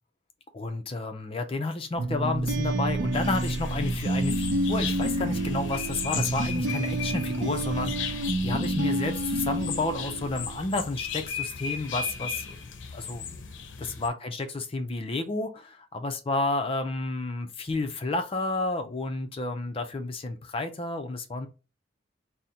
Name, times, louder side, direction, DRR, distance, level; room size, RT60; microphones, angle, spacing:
voice 1, 0.5-12.6 12.9-13.3 13.8-15.8 16.0-21.5, left 2 dB, 30° left, 0.4 m, -31 dB
sound 1, 2.0-10.7, right 1 dB, 75° right, 0.5 m, -29 dB
sound 2, 3.1-14.1, left 6 dB, 85° left, 0.6 m, -37 dB
4.2 x 2.0 x 3.6 m
head